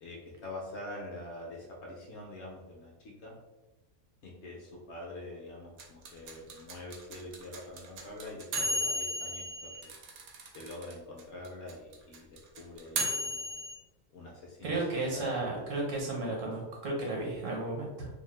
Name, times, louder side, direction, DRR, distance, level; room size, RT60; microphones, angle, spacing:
voice 1, 0.0-3.3 4.2-9.9 10.5-12.3 12.5-13.6 14.1-14.8 15.0-15.6, left 2 dB, 65° left, -2 dB, 0.7 m, -45 dB
sound 1, 5.8-10.9 11.2-11.3 11.4-13.8, equal, 90° right, 1.1 m, -34 dB
voice 2, 14.6-18.1, right 2 dB, 65° right, -2 dB, 1.1 m, -33 dB
2.6 x 2.0 x 3.1 m, 1.1 s
omnidirectional pair, 1.5 m